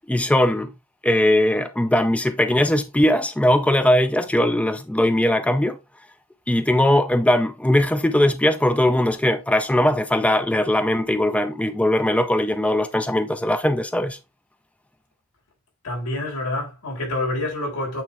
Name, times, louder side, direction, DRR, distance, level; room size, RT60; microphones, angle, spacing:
voice 1, 0.1-0.7 1.0-5.8 6.5-14.2, left 1 dB, 5° left, 0.4 m, -20 dB
voice 2, 15.8-18.0, left 1 dB, 85° left, 4.2 m, -27 dB
8.7 x 3.7 x 3.4 m
head